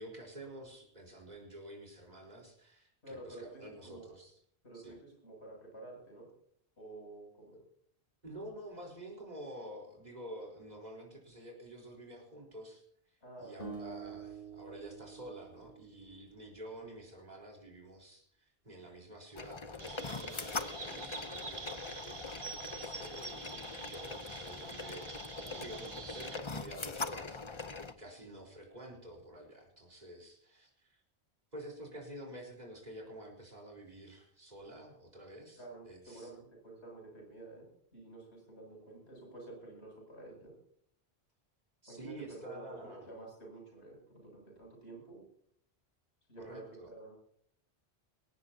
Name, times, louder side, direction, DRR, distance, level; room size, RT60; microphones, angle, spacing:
voice 1, 0.0-4.4 4.7-5.0 7.5-7.6 8.2-31.0 31.5-36.3 41.8-43.1 46.4-46.9, right 1 dB, 40° right, 0 dB, 4.2 m, -49 dB
voice 2, 3.0-4.0 4.6-6.3 6.8-7.6 13.2-13.8 35.6-40.5 41.9-45.2 46.3-47.1, right 2 dB, 80° left, -1 dB, 8.2 m, -50 dB
sound 1, 13.6-16.8, right 5 dB, 50° left, 6.1 m, -47 dB
sound 2, 19.3-27.9, left 4 dB, 30° left, 0.8 m, -42 dB
Chirp tweet, 19.8-26.4, right 4 dB, 90° right, 2.0 m, -46 dB
20.5 x 18.0 x 2.8 m, 0.63 s
omnidirectional pair, 1.1 m